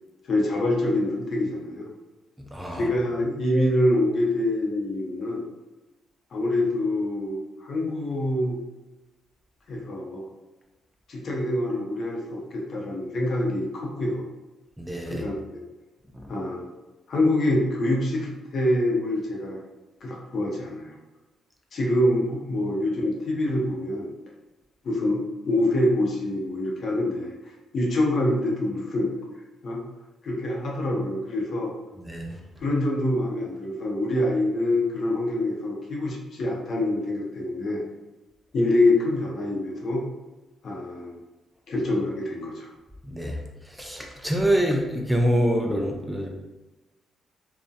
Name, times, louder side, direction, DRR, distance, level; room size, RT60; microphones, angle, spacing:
voice 1, 0.3-1.9 2.7-5.5 6.3-8.6 9.7-10.3 11.1-14.2 15.1-15.3 16.3-16.6 17.1-19.6 20.0-21.0 21.7-24.1 24.8-27.3 27.7-29.1 29.6-29.8 30.2-31.7 32.6-37.8 38.5-40.0 40.6-41.2 41.7-42.7, left 1 dB, 55° left, -1 dB, 0.6 m, -25 dB
voice 2, 2.5-2.9 14.8-15.2 16.1-16.3 32.0-32.4 43.0-46.3, equal, 5° right, 1 dB, 0.3 m, -26 dB
2.6 x 2.1 x 2.3 m, 1.1 s
cardioid pair, 90°, 0 cm